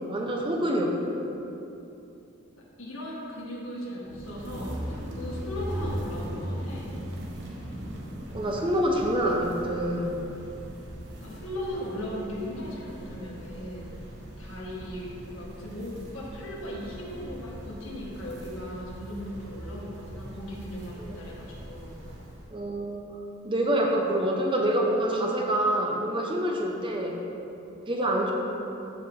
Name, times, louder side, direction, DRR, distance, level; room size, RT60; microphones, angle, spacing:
voice 1, 0.1-1.0 8.3-10.1 21.0-21.1 22.5-23.1 23.4-27.2 27.9-28.3, right 1 dB, 25° right, 0 dB, 0.8 m, -26 dB
voice 2, 2.6-6.9 11.2-13.9 14.4-22.0, equal, 80° left, -4 dB, 1.9 m, -37 dB
sound 1, 4.1-22.6, equal, 60° right, 1.2 m, -39 dB
14.5 x 4.9 x 3.7 m, 2.8 s
head